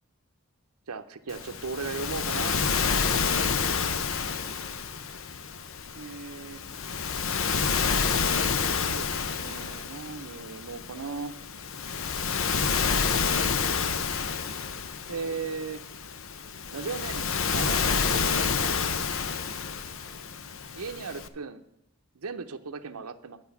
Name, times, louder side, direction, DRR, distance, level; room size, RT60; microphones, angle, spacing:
voice 1, 0.9-2.5 5.9-6.6 8.9-11.4 15.1-15.8 16.7-18.7 20.7-21.6 22.1-23.4, right 4 dB, 90° right, 7 dB, 0.7 m, -37 dB
Waves surf, 1.3-21.3, left 6 dB, 65° left, 0.7 m, -29 dB
11.0 x 6.2 x 7.0 m, 0.84 s
head